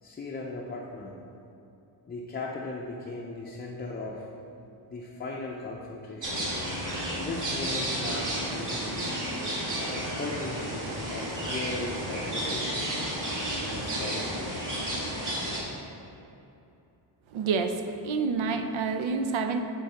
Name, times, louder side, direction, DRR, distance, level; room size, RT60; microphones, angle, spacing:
voice 1, 0.0-1.1 2.1-4.3 4.9-6.5 7.2-8.8 9.7-12.9 13.7-14.3, left 2 dB, 20° left, -2 dB, 0.5 m, -37 dB
sound 1, 6.2-15.6, right 1 dB, 40° right, 1.7 m, -32 dB
voice 2, 17.3-19.6, right 4 dB, 80° right, 7 dB, 0.7 m, -28 dB
8.3 x 3.9 x 5.7 m, 2.7 s
wide cardioid pair, 145°, 46 cm